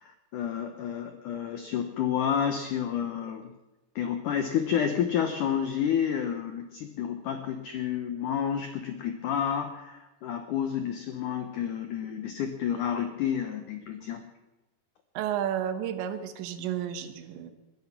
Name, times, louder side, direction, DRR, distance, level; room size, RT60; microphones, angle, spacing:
voice 1, 0.0-3.5 4.0-14.2, left 8 dB, 80° left, 7 dB, 1.8 m, -30 dB
voice 2, 15.2-17.5, right 10 dB, 90° right, 9 dB, 3.5 m, -32 dB
20.5 x 12.0 x 5.9 m, 1.1 s
omnidirectional pair, 5.0 m